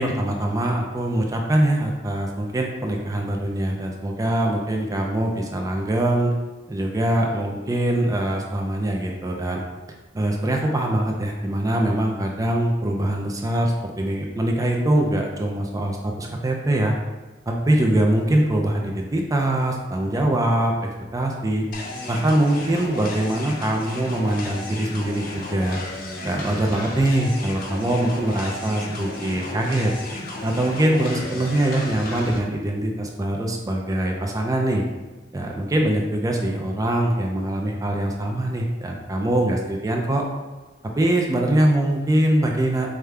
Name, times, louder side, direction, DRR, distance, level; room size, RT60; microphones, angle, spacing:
voice 1, 0.0-6.3 6.7-9.6 10.1-16.9 17.5-21.7 22.1-25.8 26.2-29.9 30.4-34.8 35.3-40.2 41.0-43.0, right 1 dB, 20° right, 1 dB, 0.4 m, -23 dB
sound 1, 21.7-32.4, left 2 dB, 50° left, 0.6 m, -34 dB
4.9 x 2.2 x 3.3 m, 1.2 s
head